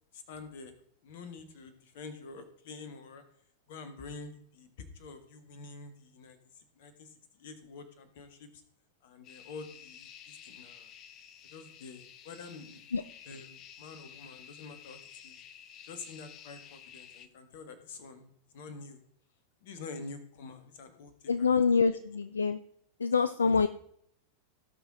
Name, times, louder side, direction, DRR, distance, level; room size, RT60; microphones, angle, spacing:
voice 1, 0.1-0.7 1.0-3.2 3.7-8.6 9.0-10.9 11.5-12.8 13.3-15.4 15.8-19.0 19.6-21.6 23.4-23.5, left 4 dB, 55° left, 10 dB, 1.7 m, -47 dB
sound 1, 9.2-17.3, left 9 dB, 35° left, 0.8 m, -52 dB
voice 2, 21.3-22.6 23.0-23.7, left 5 dB, 75° left, 14 dB, 0.4 m, -26 dB
17.5 x 6.0 x 3.8 m, 0.67 s
figure-of-eight pair, 90°, 0 cm